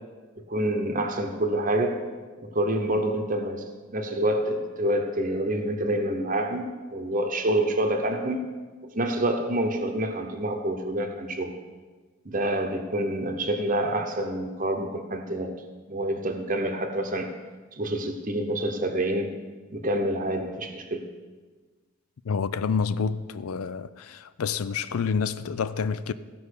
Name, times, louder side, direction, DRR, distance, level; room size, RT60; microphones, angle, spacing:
voice 1, 0.4-2.0 2.4-8.5 8.9-11.5 12.2-15.6 15.9-17.3 17.8-19.3 19.7-21.0, right 1 dB, 40° right, 0.8 m, -27 dB
voice 2, 22.2-26.1, left 5 dB, 90° left, 0.4 m, -28 dB
15.5 x 5.3 x 6.5 m
head